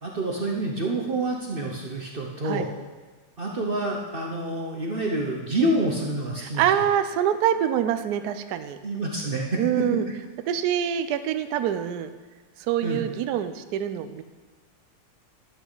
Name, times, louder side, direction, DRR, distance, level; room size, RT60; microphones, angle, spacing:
voice 1, 0.0-2.7 3.4-6.6 8.8-9.6 9.9-10.0 12.8-13.0, right 1 dB, 60° right, -1 dB, 0.5 m, -27 dB
voice 2, 6.4-8.8 9.6-10.0 10.5-12.1 12.7-14.2, right 10 dB, 90° right, 10 dB, 0.8 m, -25 dB
12.0 x 8.3 x 3.9 m, 1.3 s
omnidirectional pair, 2.4 m